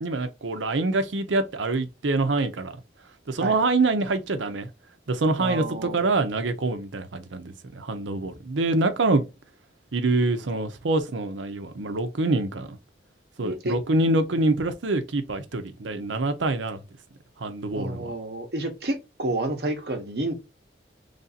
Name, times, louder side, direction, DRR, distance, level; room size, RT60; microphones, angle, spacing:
voice 1, 0.0-2.7 3.3-4.7 5.1-9.3 9.9-12.8 13.4-16.8 17.4-18.1, right 2 dB, 85° right, 0.7 m, -25 dB
voice 2, 5.4-6.1 13.4-13.8 17.7-20.3, right 2 dB, 55° right, 0.9 m, -30 dB
3.3 x 2.6 x 4.0 m
head